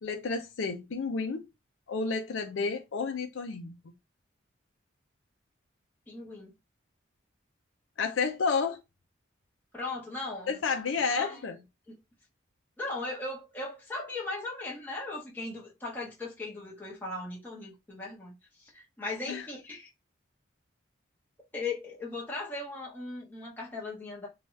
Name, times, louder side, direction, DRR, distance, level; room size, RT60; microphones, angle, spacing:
voice 1, 0.0-1.5 1.9-3.8 8.0-8.8 10.5-11.6 19.3-19.5, left 5 dB, 75° left, 0.5 m, -31 dB
voice 2, 6.1-6.5 9.7-10.6 11.1-11.4 11.9-12.0 12.8-19.9 21.5-24.3, left 2 dB, 10° left, 0.9 m, -38 dB
2.8 x 2.3 x 3.1 m
head